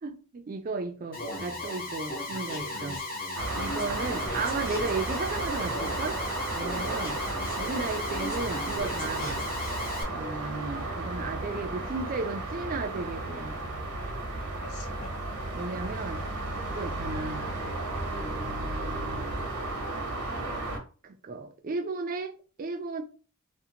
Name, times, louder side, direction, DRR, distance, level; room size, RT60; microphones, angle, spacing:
voice 1, 0.0-3.0 3.6-6.2 6.6-7.2 7.6-9.4 10.1-13.6 15.5-16.2 16.7-17.5 18.1-19.3 21.0-23.0, right 3 dB, 40° right, 0.3 m, -35 dB
Alarm, 1.1-10.0, left 2 dB, 40° left, 0.8 m, -35 dB
sound 1, 3.3-20.8, right 2 dB, 75° right, 0.8 m, -34 dB
voice 2, 14.0-15.2, left 4 dB, 75° left, 0.5 m, -51 dB
2.5 x 2.5 x 2.8 m
head